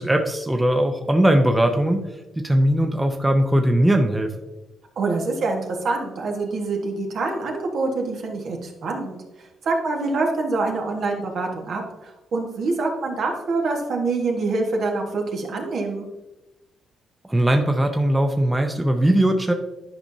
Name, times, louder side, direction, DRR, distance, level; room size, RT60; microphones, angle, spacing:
voice 1, 0.0-2.0 2.4-4.3 17.3-19.5, right 1 dB, 10° right, 4 dB, 0.8 m, -19 dB
voice 2, 5.0-9.2 9.6-16.1, right 3 dB, 65° right, 1 dB, 1.4 m, -25 dB
10.5 x 5.0 x 2.7 m, 0.99 s
cardioid pair, 80°, 0 cm